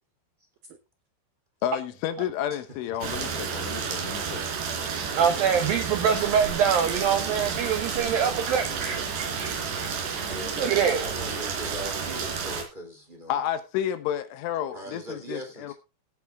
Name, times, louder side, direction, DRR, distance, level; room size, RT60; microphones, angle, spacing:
voice 1, 1.6-4.5 13.3-15.7, left 10 dB, 75° left, 3.5 m, -31 dB
voice 2, 2.9-4.6 5.0-5.8 10.3-13.4 14.7-15.7, equal, 10° right, 2.8 m, -41 dB
Rain, 3.0-12.6, right 6 dB, 60° right, 4.9 m, -31 dB
voice 3, 5.2-9.9 10.6-11.0, right 7 dB, 80° right, 2.0 m, -25 dB
17.5 x 8.2 x 3.7 m
omnidirectional pair, 5.9 m